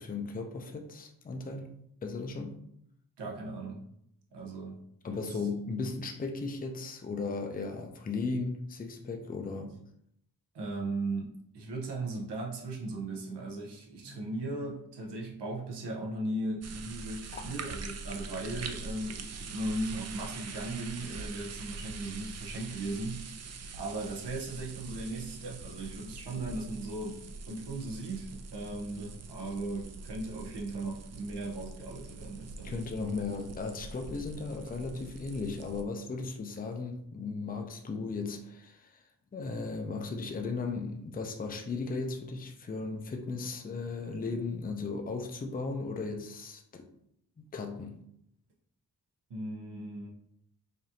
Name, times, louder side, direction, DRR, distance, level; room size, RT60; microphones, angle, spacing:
voice 1, 0.0-1.7 2.0-2.6 5.0-9.7 14.1-14.3 17.3-17.6 32.6-39.0 39.3-46.9 47.4-48.0, left 4 dB, 20° left, 4 dB, 0.5 m, -36 dB
voice 2, 3.2-3.8 4.3-4.8 5.1-5.5 10.5-23.4 23.7-27.2 27.5-32.8 49.3-50.1, right 2 dB, 85° right, -2 dB, 0.9 m, -37 dB
sound 1, 16.6-35.8, right 4 dB, 40° right, 0.4 m, -44 dB
5.0 x 2.6 x 2.8 m, 0.73 s
wide cardioid pair, 100°, 40 cm